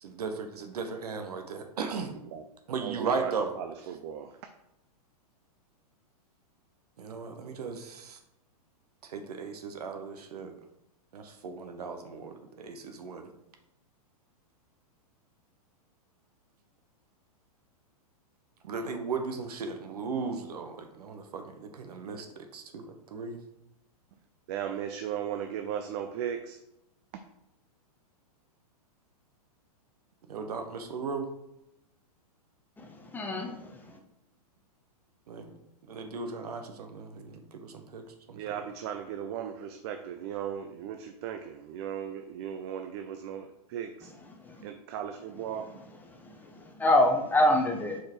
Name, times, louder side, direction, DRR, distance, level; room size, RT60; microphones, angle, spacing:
voice 1, 0.0-2.1 2.7-3.5 7.0-8.2 9.0-10.5 11.1-13.3 18.6-23.4 30.3-31.3 35.3-35.5 35.9-38.4, right 4 dB, 80° right, 6 dB, 1.1 m, -36 dB
voice 2, 1.8-2.5 2.8-4.3 24.5-26.6 38.3-44.1 44.6-45.7, right 9 dB, 45° right, 7 dB, 0.5 m, -37 dB
voice 3, 32.8-34.0 44.4-44.7 46.1-48.0, left 1 dB, 10° left, 2 dB, 0.7 m, -27 dB
4.7 x 4.7 x 4.4 m, 0.86 s
hypercardioid pair, 140°, 20 cm